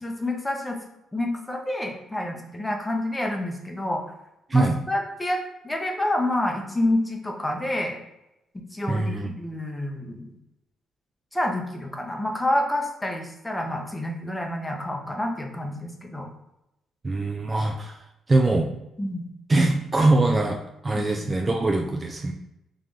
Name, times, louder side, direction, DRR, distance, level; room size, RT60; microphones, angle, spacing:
voice 1, 0.0-0.8 1.1-4.0 4.5-5.4 5.6-8.0 8.7-10.3 11.3-16.3 19.0-19.3 21.0-21.3, left 1 dB, 10° left, 2 dB, 0.7 m, -28 dB
voice 2, 8.9-9.3 17.0-18.0 18.3-18.7 19.5-22.3, right 2 dB, 25° right, 3 dB, 0.3 m, -22 dB
3.1 x 2.5 x 3.6 m, 0.86 s
cardioid pair, 90°, 0 cm